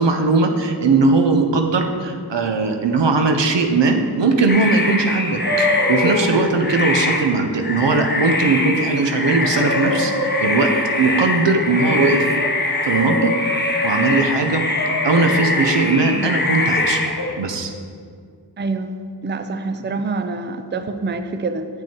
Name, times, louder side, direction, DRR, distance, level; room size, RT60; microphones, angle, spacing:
voice 1, 0.0-10.7 11.0-12.3 12.8-13.3 13.8-14.6 15.0-17.0 17.4-17.7, right 3 dB, 90° right, 5 dB, 0.8 m, -19 dB
sound 1, 4.5-17.3, left 2 dB, 25° left, 0.9 m, -23 dB
sound 2, 5.4-6.5 9.0-9.1 9.4-11.1 11.7-12.5 12.9-14.3 14.8-15.8 16.7-17.3, left 2 dB, 45° left, 1.5 m, -25 dB
voice 2, 18.6-18.9 19.2-21.7, right 3 dB, 25° right, 9 dB, 0.5 m, -26 dB
7.5 x 6.2 x 4.4 m, 2.1 s
wide cardioid pair, 40°, 42 cm